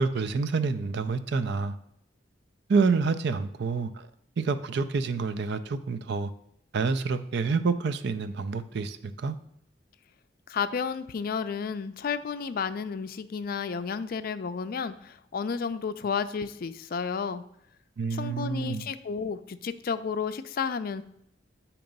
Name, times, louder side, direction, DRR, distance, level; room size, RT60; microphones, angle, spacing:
voice 1, 0.0-1.8 2.7-4.1 4.4-6.3 6.7-9.4 18.0-18.9, right 4 dB, 65° right, 0.5 m, -28 dB
voice 2, 10.5-17.4 18.1-21.0, left 6 dB, 55° left, 0.4 m, -32 dB
8.7 x 3.0 x 5.2 m
head